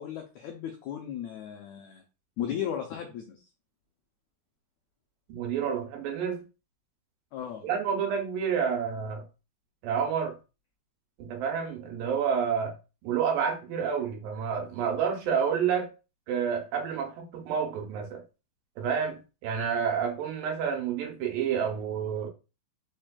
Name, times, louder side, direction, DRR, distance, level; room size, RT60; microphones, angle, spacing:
voice 1, 0.0-2.0 2.4-3.4 7.3-7.7, left 9 dB, 85° left, 1.6 m, -35 dB
voice 2, 5.3-6.4 7.6-9.2 9.8-10.4 11.2-12.7 13.0-15.9 16.3-18.2 18.8-22.3, right 7 dB, 80° right, 2.5 m, -29 dB
4.8 x 4.4 x 2.2 m
omnidirectional pair, 3.9 m